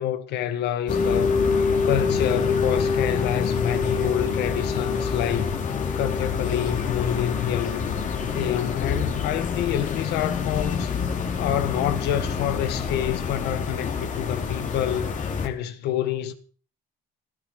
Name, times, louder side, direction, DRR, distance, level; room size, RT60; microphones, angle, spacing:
voice 1, 0.0-5.6 6.0-7.8 8.3-10.9 11.4-16.3, left 11 dB, 85° left, 1.7 m, -27 dB
sound 1, 0.9-15.5, left 5 dB, 50° left, 2.7 m, -26 dB
17.5 x 12.5 x 5.0 m
cardioid pair, 110°, 17 cm